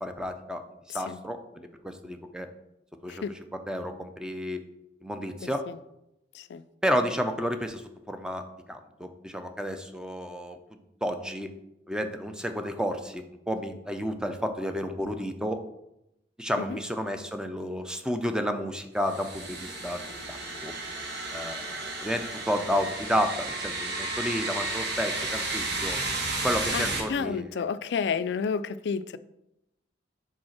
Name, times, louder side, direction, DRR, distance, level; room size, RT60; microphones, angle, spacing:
voice 1, 0.0-0.6 0.9-2.5 3.0-4.6 5.0-5.6 6.8-8.4 8.7-10.6 11.0-11.5 11.9-15.6 16.4-20.0 20.3-20.4 20.6-20.7 21.3-26.0 26.4-27.7, equal, 5° right, 7 dB, 0.5 m, -31 dB
voice 2, 0.9-1.2 3.1-3.3 5.4-5.8 6.3-6.6 16.6-16.8 26.7-29.2, left 6 dB, 70° left, 14 dB, 0.3 m, -31 dB
sound 1, 19.0-27.0, right 2 dB, 65° right, 1.2 m, -33 dB
5.2 x 3.9 x 5.8 m, 0.86 s
head